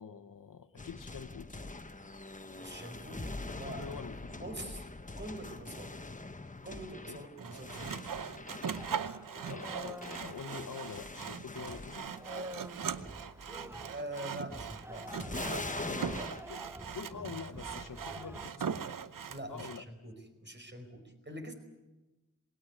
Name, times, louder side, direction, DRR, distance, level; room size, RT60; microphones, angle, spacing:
voice 1, 0.0-1.6 3.5-4.4 4.6-4.7 7.1-7.2 9.4-12.1 16.5-16.6 16.9-18.7 19.5-19.8, left 7 dB, 75° left, 10 dB, 1.1 m, -45 dB
sound 1, 0.8-12.4 12.7-13.1 15.1-16.4, left 2 dB, 25° left, 1.2 m, -43 dB
voice 2, 2.6-3.9 4.4-4.9 5.2-8.0 13.8-15.1 15.8-16.4 19.3-20.1 20.4-21.5, right 1 dB, 35° right, 6 dB, 5.0 m, -45 dB
Sawing, 7.4-19.8, right 7 dB, 85° right, 0.9 m, -40 dB
sound 2, 8.7-11.3 11.6-18.5, equal, 10° right, 1.0 m, -48 dB
19.5 x 18.0 x 9.8 m, 1.1 s
wide cardioid pair, 60°, 32 cm